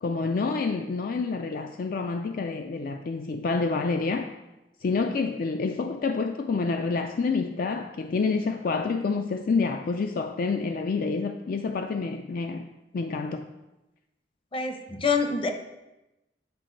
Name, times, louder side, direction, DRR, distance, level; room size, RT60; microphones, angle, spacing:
voice 1, 0.0-4.3 4.8-12.7 12.9-13.5, left 4 dB, 55° left, 0.4 m, -28 dB
voice 2, 14.5-15.5, left 4 dB, 30° left, 0.8 m, -26 dB
9.5 x 5.1 x 3.9 m
head